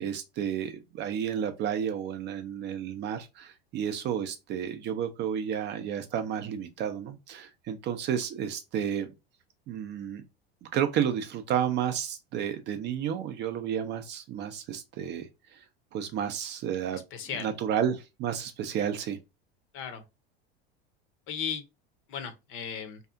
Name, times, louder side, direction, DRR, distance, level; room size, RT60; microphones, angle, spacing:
voice 1, 0.0-9.1 9.7-10.2 10.7-15.6 15.9-17.0 17.3-19.2, right 9 dB, 35° right, 0.4 m, -31 dB
voice 2, 16.9-17.5 19.7-20.0 21.3-21.6 22.1-23.0, left 7 dB, 45° left, 0.7 m, -36 dB
2.7 x 2.3 x 2.3 m
hypercardioid pair, 90°, 30 cm